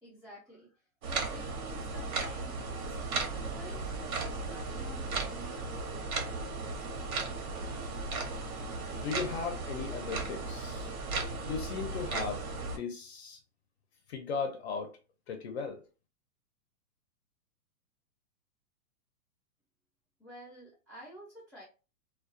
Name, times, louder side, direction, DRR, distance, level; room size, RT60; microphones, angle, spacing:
voice 1, 0.0-6.4 20.2-21.6, equal, 5° right, 0.4 m, -51 dB
sound 1, 1.0-12.8, right 3 dB, 75° right, 0.9 m, -36 dB
voice 2, 8.9-10.9 11.5-13.4 14.1-14.9 15.3-15.8, left 5 dB, 45° left, 0.5 m, -37 dB
2.2 x 2.2 x 2.5 m
hypercardioid pair, 150°, 44 cm